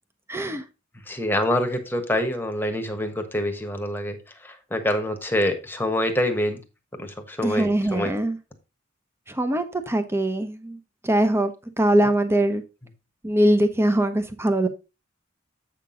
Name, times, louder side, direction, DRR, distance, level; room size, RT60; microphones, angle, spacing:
voice 1, 0.3-0.6 7.4-8.4 9.3-10.8 11.0-12.6 13.2-14.7, right 1 dB, 10° right, 9 dB, 0.9 m, -22 dB
voice 2, 1.1-4.2 4.4-6.6 7.0-8.1, left 1 dB, 10° left, 5 dB, 1.3 m, -26 dB
8.1 x 6.0 x 3.8 m, 0.27 s
head